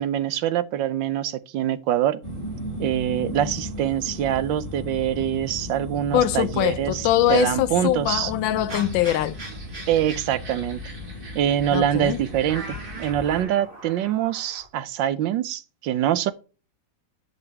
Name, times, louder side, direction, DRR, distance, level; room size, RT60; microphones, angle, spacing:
voice 1, 0.0-2.2 2.8-8.3 9.9-10.8 11.3-16.3, right 11 dB, 75° right, 1.3 m, -24 dB
sound 1, 2.2-13.4, left 1 dB, 25° right, 4.8 m, -36 dB
voice 2, 6.1-9.4 11.7-12.2, left 12 dB, 75° left, 1.3 m, -22 dB
sound 2, 8.7-14.7, right 2 dB, 40° right, 3.3 m, -41 dB
10.5 x 6.0 x 3.4 m
omnidirectional pair, 2.2 m